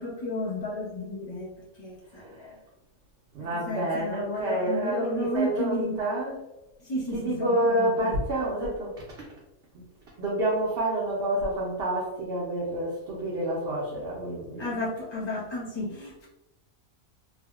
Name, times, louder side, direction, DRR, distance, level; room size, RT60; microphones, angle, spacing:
voice 1, 0.0-1.5 1.8-2.6 3.5-6.0 6.8-8.1 14.6-16.3, left 1 dB, 30° left, -5 dB, 0.5 m, -33 dB
voice 2, 2.1-2.5 3.3-6.4 7.1-9.3 10.2-14.7, right 1 dB, 60° right, -4 dB, 0.7 m, -28 dB
3.3 x 2.1 x 2.3 m, 0.94 s
omnidirectional pair, 1.4 m